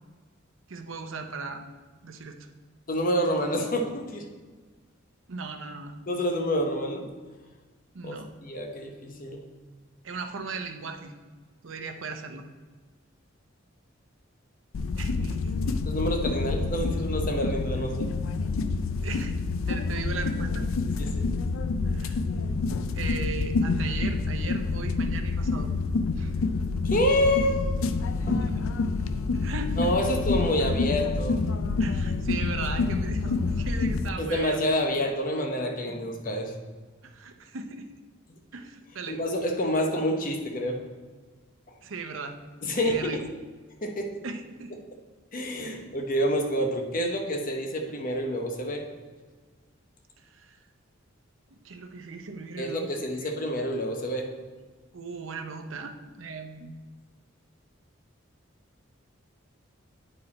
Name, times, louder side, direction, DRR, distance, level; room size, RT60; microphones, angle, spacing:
voice 1, 0.7-1.6 2.0-2.5 5.3-5.9 7.9-8.3 10.0-11.1 11.6-12.5 15.0-15.4 15.7-15.8 19.0-19.4 19.7-20.7 21.9-22.2 22.9-25.7 26.2-26.3 28.2-28.7 29.3-29.9 31.8-34.6 37.0-38.0 38.5-39.2 41.8-42.3 42.7-43.2 44.2-44.8 45.6-45.8 50.2-50.6 51.5-53.3 54.9-56.7, right 4 dB, 75° right, 6 dB, 0.7 m, -38 dB
voice 2, 2.9-4.3 6.1-7.1 8.0-9.5 15.9-18.1 21.0-21.3 26.8-27.6 28.3-28.4 29.8-31.4 34.2-36.5 39.1-40.8 42.6-43.2 43.8-44.2 45.3-48.8 52.6-54.3, equal, 40° left, 3 dB, 0.9 m, -28 dB
sound 1, 14.7-34.1, left 3 dB, 80° left, 0.4 m, -28 dB
8.9 x 4.8 x 4.2 m, 1.4 s
head